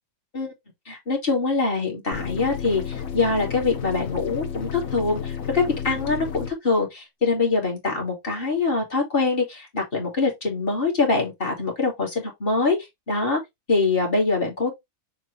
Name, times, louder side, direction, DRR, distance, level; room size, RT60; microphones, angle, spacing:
voice 1, 0.9-12.8 13.1-13.4 13.7-14.7, left 3 dB, 30° left, 2.6 m, -24 dB
sound 1, 2.1-6.5, left 7 dB, 50° left, 1.6 m, -32 dB
6.8 x 4.4 x 3.2 m
omnidirectional pair, 1.9 m